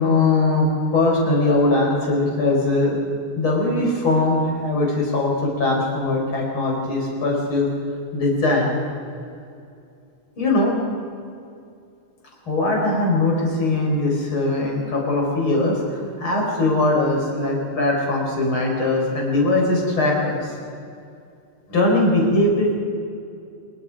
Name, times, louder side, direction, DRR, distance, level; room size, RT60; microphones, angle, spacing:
voice 1, 0.0-3.0 3.4-7.7 8.1-8.8 10.4-10.7 12.5-15.8 16.2-20.5 21.7-22.7, left 2 dB, 30° left, -2 dB, 5.4 m, -20 dB
25.0 x 22.5 x 5.0 m, 2.5 s
omnidirectional pair, 5.1 m